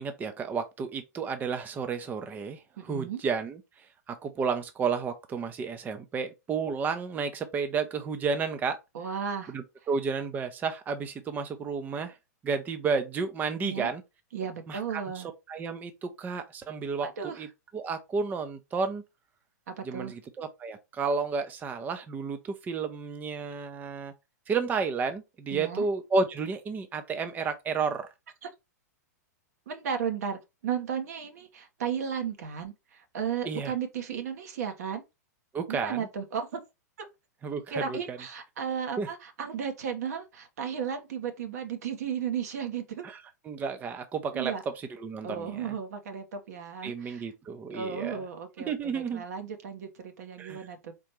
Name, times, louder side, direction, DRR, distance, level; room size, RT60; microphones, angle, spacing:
voice 1, 0.0-8.8 9.5-12.2 12.4-14.0 14.7-17.5 17.7-19.0 19.8-24.1 24.5-28.1 33.5-33.7 35.5-36.1 37.4-38.2 39.0-39.1 43.0-43.2 43.5-44.5 45.0-45.7 46.8-48.2 48.7-49.2 50.4-50.7, right 5 dB, 20° right, 0.6 m, -32 dB
voice 2, 2.8-3.2 8.9-9.5 13.6-13.9 14.3-15.3 17.0-17.4 19.7-20.1 25.5-25.9 28.4-28.5 29.7-35.0 35.7-36.6 37.0-37.1 37.7-43.1 44.3-44.6 45.2-47.2 47.7-50.9, right 7 dB, 65° right, 1.2 m, -34 dB
4.3 x 3.7 x 3.1 m
hypercardioid pair, 115°, 9 cm